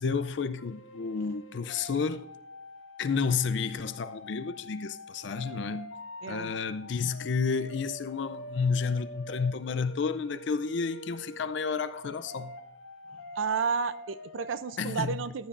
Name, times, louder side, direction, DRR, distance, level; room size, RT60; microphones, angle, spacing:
voice 1, 0.0-2.3 3.0-5.9 6.3-12.6 14.8-15.3, left 5 dB, 65° left, 0.5 m, -31 dB
sound 1, 0.6-14.9, left 1 dB, 90° left, 0.9 m, -45 dB
voice 2, 13.3-15.5, right 5 dB, 80° right, 0.5 m, -31 dB
15.0 x 10.5 x 2.5 m
head